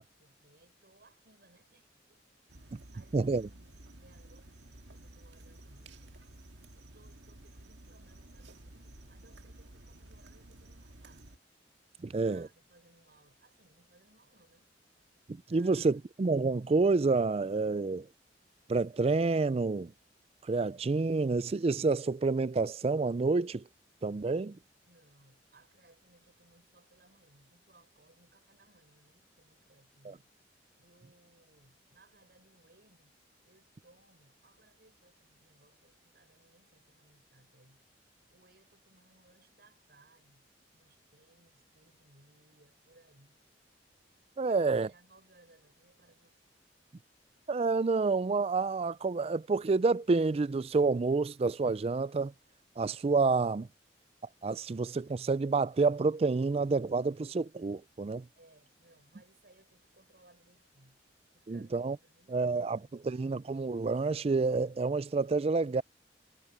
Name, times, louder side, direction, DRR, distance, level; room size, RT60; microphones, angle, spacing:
voice 1, 0.2-2.2 2.5-6.1 6.7-11.4 12.0-14.7 15.5-16.0 24.8-30.3 30.8-33.1 33.4-37.8 38.3-43.4 44.4-46.4 58.4-61.0 61.3-63.3, right 2 dB, 60° right, 6.3 m, -64 dB
sound 1, 2.5-11.4, right 1 dB, 85° right, 1.8 m, -53 dB
voice 2, 3.1-3.5 12.0-12.5 15.3-18.1 18.7-19.9 20.5-23.6 24.0-24.6 30.1-30.2 44.4-44.9 47.5-52.3 52.8-53.7 54.4-58.3 61.5-62.0 62.3-65.8, right 3 dB, 35° right, 0.4 m, -29 dB
head